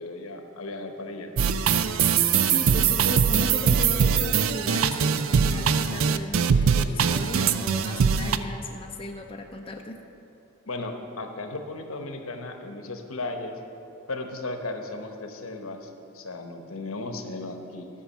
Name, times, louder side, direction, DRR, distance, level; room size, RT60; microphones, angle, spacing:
voice 1, 0.0-1.3 10.7-13.6 14.1-17.9, left 2 dB, 70° left, 5 dB, 1.0 m, -35 dB
sound 1, 1.4-8.4, right 7 dB, 65° right, 0.4 m, -22 dB
voice 2, 2.5-10.0, left 1 dB, 25° left, 1 dB, 0.5 m, -36 dB
11.5 x 6.2 x 7.2 m, 2.9 s
head